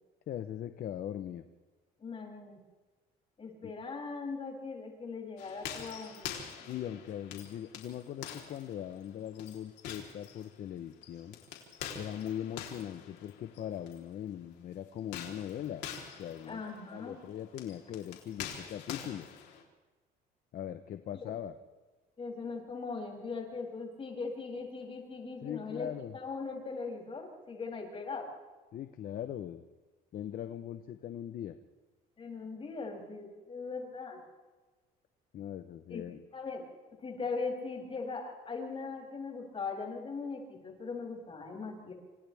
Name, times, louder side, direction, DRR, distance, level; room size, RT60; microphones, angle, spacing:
voice 1, 0.3-1.4 3.6-3.7 6.7-11.4 11.9-15.8 16.2-16.6 16.9-19.3 20.5-21.5 25.4-26.2 28.7-29.6 30.1-31.5 35.3-36.2, left 10 dB, 55° left, 9 dB, 1.0 m, -40 dB
voice 2, 2.0-2.6 3.4-6.3 16.5-17.2 21.2-21.3 22.2-25.9 26.1-28.3 32.2-34.2 35.9-36.0 36.3-36.6 37.0-41.9, left 4 dB, 35° left, -1 dB, 7.8 m, -40 dB
sound 1, 5.4-14.0 15.0-19.6, left 8 dB, 85° left, 3.8 m, -46 dB
28.0 x 27.0 x 3.6 m, 1.3 s
cardioid pair, 110°, 17 cm